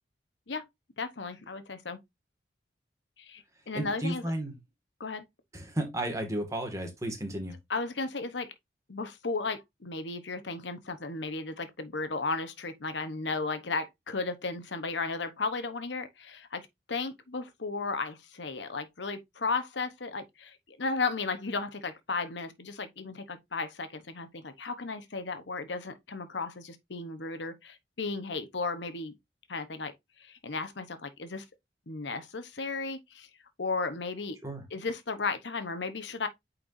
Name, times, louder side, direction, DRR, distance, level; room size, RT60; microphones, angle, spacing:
voice 1, 1.0-2.0 3.2-4.2 5.0-5.2 7.7-8.5 8.9-29.1 29.5-29.9 30.2-31.4 31.9-33.3 33.6-34.4 34.7-36.3, left 4 dB, 80° left, 1.0 m, -35 dB
voice 2, 3.7-4.6 5.5-7.6 34.4-34.6, right 1 dB, 20° right, 1.9 m, -33 dB
8.8 x 4.5 x 2.6 m
head